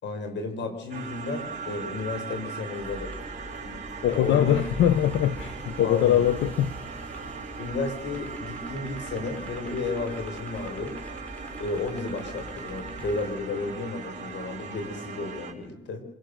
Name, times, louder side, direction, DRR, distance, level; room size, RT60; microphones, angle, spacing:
voice 1, 0.0-3.1 4.1-4.6 5.8-6.2 7.6-11.0 11.6-16.0, left 3 dB, 65° left, 6 dB, 5.2 m, -33 dB
sound 1, 0.9-15.5, right 5 dB, 35° right, 5.3 m, -39 dB
sound 2, 2.7-13.3, equal, 5° left, 4.1 m, -44 dB
voice 2, 3.7-6.7, left 11 dB, 85° left, 12 dB, 1.1 m, -23 dB
26.0 x 18.0 x 6.8 m, 0.92 s
cardioid pair, 90°, 20 cm